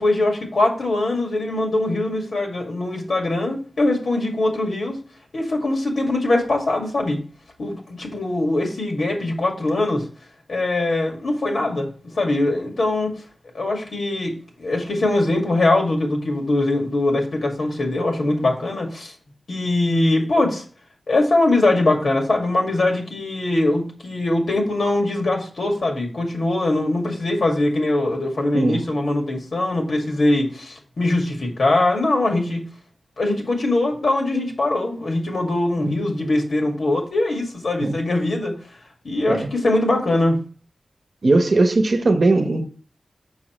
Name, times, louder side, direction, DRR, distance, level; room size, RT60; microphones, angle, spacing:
voice 1, 0.0-5.0 5.3-7.2 7.6-10.1 10.5-13.1 13.5-14.3 14.6-19.1 19.5-20.6 21.1-32.6 33.2-38.6 39.0-40.4, left 2 dB, 70° left, 2.1 m, -22 dB
voice 2, 41.2-42.7, right 2 dB, 55° right, 0.9 m, -19 dB
7.0 x 6.2 x 3.1 m
wide cardioid pair, 120°, 0 cm